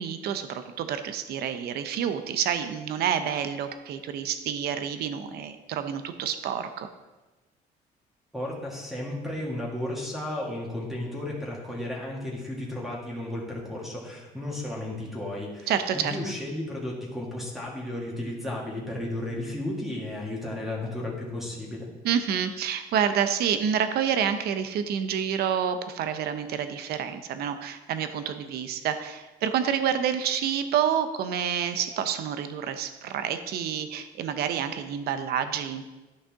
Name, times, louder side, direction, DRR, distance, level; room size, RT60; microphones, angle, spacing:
voice 1, 0.0-6.9 15.7-16.1 22.0-35.9, right 8 dB, 70° right, 9 dB, 0.7 m, -28 dB
voice 2, 8.3-21.9, left 1 dB, ahead, -4 dB, 2.1 m, -34 dB
11.5 x 5.5 x 3.6 m, 1.1 s
cardioid pair, 110°, 17 cm